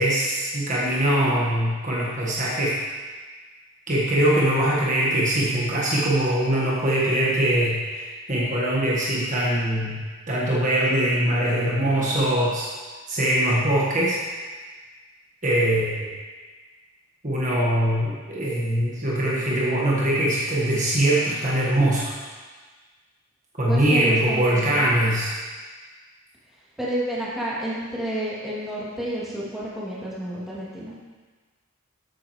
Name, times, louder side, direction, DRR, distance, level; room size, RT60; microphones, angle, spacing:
voice 1, 0.0-2.8 3.9-10.0 10.3-12.7 13.1-14.2 15.4-16.1 17.2-22.2 23.6-25.3, right 1 dB, 40° right, -6 dB, 1.5 m, -22 dB
voice 2, 23.7-24.8 26.8-31.0, equal, ahead, -9 dB, 2.6 m, -30 dB
13.0 x 8.5 x 3.1 m, 1.4 s
head